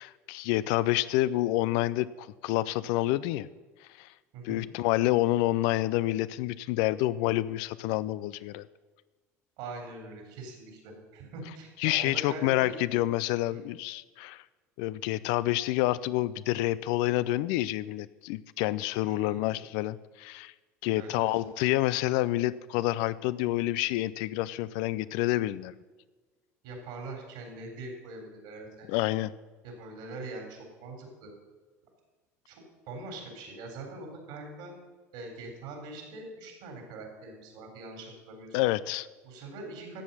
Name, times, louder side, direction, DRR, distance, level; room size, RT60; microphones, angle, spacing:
voice 1, 0.0-3.5 4.0-4.1 4.4-8.7 11.8-14.4 14.8-20.5 20.8-25.8 28.9-29.3 38.5-39.1, left 16 dB, 65° left, 17 dB, 0.4 m, -28 dB
voice 2, 4.3-4.7 9.6-12.8 13.5-13.6 19.1-19.4 21.0-21.3 26.6-28.9 29.6-31.3 32.5-34.7 35.1-38.6 39.2-40.0, right 2 dB, 65° right, 2 dB, 3.7 m, -43 dB
13.5 x 7.7 x 5.6 m, 1.3 s
hypercardioid pair, 70°, 8 cm